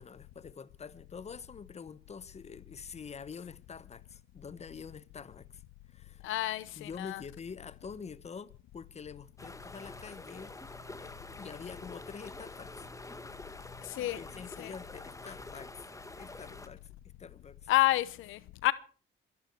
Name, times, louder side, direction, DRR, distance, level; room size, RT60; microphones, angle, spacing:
voice 1, 0.0-5.6 5.9-6.3 6.8-10.5 11.0-12.9 13.9-15.9 16.1-16.9 17.2-17.7, left 6 dB, 35° left, 1.0 m, -46 dB
voice 2, 6.2-7.2 13.8-14.2 14.6-14.7 17.7-18.7, left 16 dB, 90° left, 0.8 m, -29 dB
sound 1, 9.4-16.7, left 2 dB, 15° left, 1.7 m, -47 dB
23.5 x 12.0 x 4.6 m
cardioid pair, 90°, 20 cm